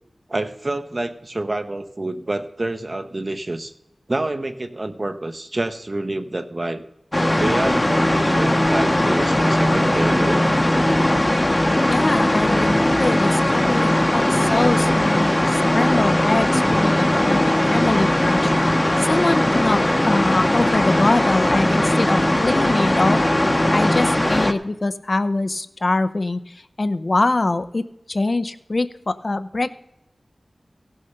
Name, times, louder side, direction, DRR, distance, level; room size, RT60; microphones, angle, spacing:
voice 1, 0.3-3.7 4.1-6.8 7.4-10.5 20.6-20.8, right 2 dB, 40° right, 8 dB, 0.9 m, -27 dB
sound 1, 7.1-24.5, left 1 dB, 20° left, 0.9 m, -19 dB
voice 2, 11.9-18.5 19.0-23.2 23.7-29.7, left 2 dB, 50° left, 11 dB, 0.6 m, -23 dB
16.0 x 6.4 x 5.7 m, 0.85 s
wide cardioid pair, 80°, 0 cm